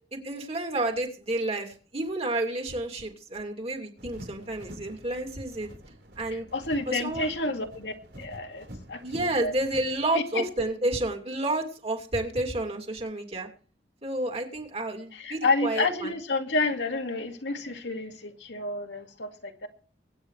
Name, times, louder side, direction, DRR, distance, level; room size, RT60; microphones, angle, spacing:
voice 1, 0.3-5.7 6.2-6.5 6.9-7.3 9.0-13.5 14.0-16.1, right 1 dB, 35° right, 2.8 m, -30 dB
sound 1, 4.0-10.1, equal, 85° right, 4.6 m, -47 dB
voice 2, 6.3-9.5 10.1-10.4 15.1-19.7, left 3 dB, 85° left, 2.2 m, -30 dB
23.5 x 9.3 x 3.3 m
head